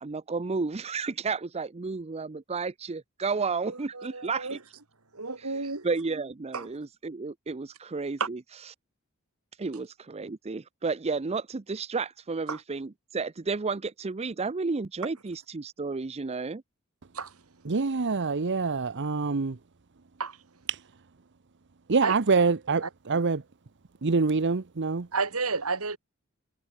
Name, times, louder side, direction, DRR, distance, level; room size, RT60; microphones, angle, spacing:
voice 1, 0.0-4.6 5.4-8.4 9.6-16.6, right 4 dB, 30° right, 0.6 m, -32 dB
voice 2, 3.6-4.6 5.1-5.9 6.5-6.7 8.2-8.3 12.5-12.6 17.1-17.3 20.2-20.4 22.0-22.1 22.8-23.2 25.1-26.0, right 4 dB, 80° right, 2.9 m, -31 dB
voice 3, 17.7-19.5 20.7-20.8 21.9-23.4 24.0-25.1, right 4 dB, 55° right, 0.8 m, -25 dB
head